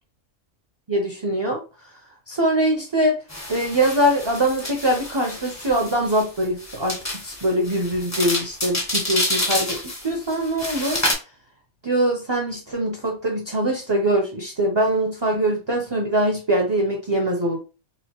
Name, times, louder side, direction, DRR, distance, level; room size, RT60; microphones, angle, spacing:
voice 1, 0.9-1.6 2.3-3.2 3.5-11.0 11.8-17.6, right 1 dB, 30° right, 1 dB, 0.5 m, -23 dB
sound 1, 3.3-11.1, left 1 dB, 20° left, 0.6 m, -28 dB
4.1 x 2.5 x 2.9 m, 0.32 s
omnidirectional pair, 1.4 m